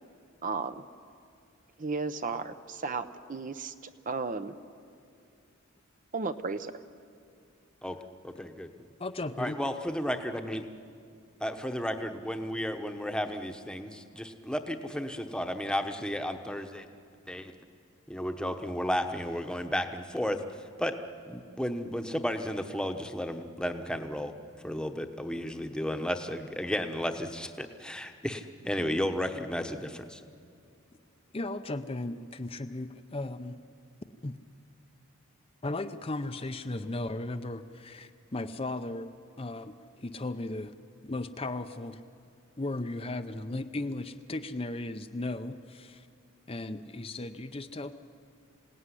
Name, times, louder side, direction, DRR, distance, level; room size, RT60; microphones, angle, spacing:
voice 1, 0.4-0.8 1.8-4.5 6.1-6.7, right 4 dB, 40° right, 10 dB, 0.7 m, -34 dB
voice 2, 8.4-8.7 9.4-10.6 11.4-16.9 17.3-17.5 18.1-20.9 21.2-24.3 24.6-30.2, equal, 5° left, 6 dB, 1.1 m, -33 dB
voice 3, 9.0-9.6 31.3-33.6 34.2-34.4 35.6-39.1 39.4-40.7 41.0-42.0 42.6-46.1 46.5-47.9, left 2 dB, 25° left, 8 dB, 0.7 m, -36 dB
26.5 x 17.5 x 9.9 m, 2.4 s
head